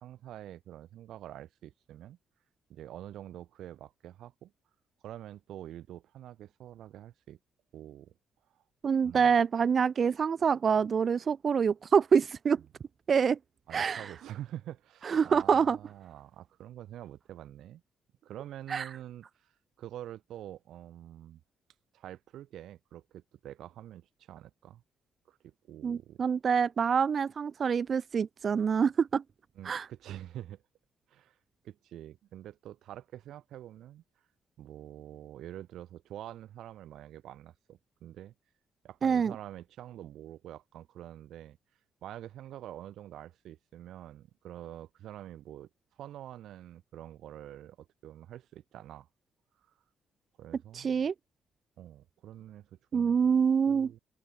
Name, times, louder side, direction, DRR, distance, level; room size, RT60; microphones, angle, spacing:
voice 1, 0.0-2.2 2.7-4.5 5.0-7.4 7.7-8.1 8.5-8.6 9.0-9.3 13.7-17.8 18.2-19.5 19.8-21.4 21.9-24.8 25.3-26.2 29.5-30.6 31.1-31.4 31.6-34.0 34.6-38.3 38.8-41.6 42.0-45.7 46.0-49.1 50.4-51.1 51.8-53.2 53.7-54.0, right 12 dB, 80° right, 1.5 m, -46 dB
voice 2, 8.8-12.6 13.1-13.4 13.7-14.1 15.1-15.8 18.7-18.8 25.8-29.2 29.6-29.9 39.0-39.3 50.7-51.1 52.9-53.9, right 6 dB, 45° right, 0.3 m, -26 dB
cardioid pair, 90°, 0 cm